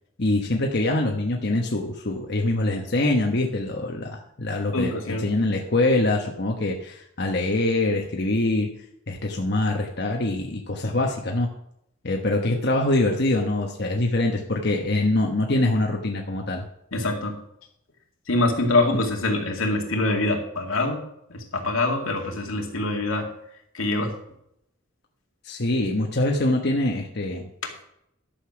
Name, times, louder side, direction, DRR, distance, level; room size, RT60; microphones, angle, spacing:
voice 1, 0.2-8.7 9.1-11.5 12.0-16.6 25.4-27.4, left 2 dB, 55° left, 1 dB, 1.2 m, -24 dB
voice 2, 4.7-5.3 16.9-17.4 18.3-21.0 21.3-23.3 23.7-24.1, left 2 dB, 85° left, 2 dB, 2.3 m, -24 dB
12.0 x 7.0 x 5.9 m, 0.77 s
head